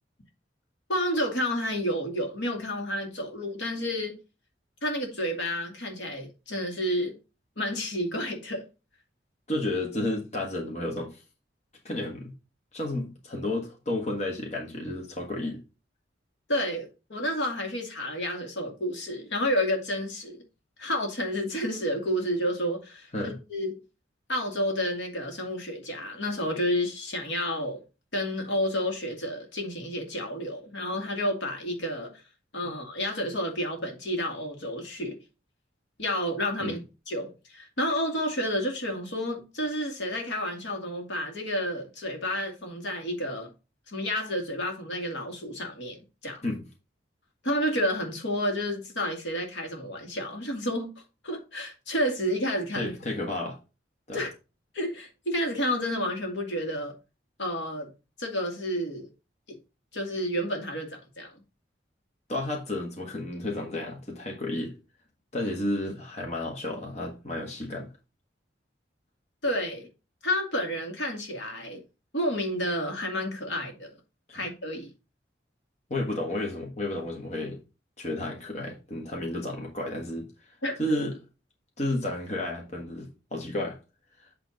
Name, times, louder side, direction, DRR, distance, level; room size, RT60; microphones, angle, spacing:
voice 1, 0.9-4.2 4.8-7.1 7.6-8.6 16.5-20.4 20.8-23.8 24.3-27.8 28.1-32.2 32.5-35.2 36.0-36.8 37.1-43.5 43.9-46.4 47.4-50.9 51.2-52.9 54.1-54.3 54.7-56.9 57.4-57.9 58.2-59.1 59.5-59.6 59.9-61.3 69.4-69.9 70.2-71.8 72.1-73.9 74.3-74.9 80.6-80.7, equal, 75° left, 2.1 m, -30 dB
voice 2, 9.5-11.2 11.8-12.3 12.7-15.6 23.1-23.4 36.6-36.8 46.4-46.6 52.7-53.6 54.1-54.2 62.3-64.7 65.3-67.9 74.3-74.4 75.9-77.6 78.0-80.3 80.8-81.1 81.8-83.8, left 1 dB, 40° left, 1.5 m, -32 dB
8.4 x 3.4 x 5.2 m
head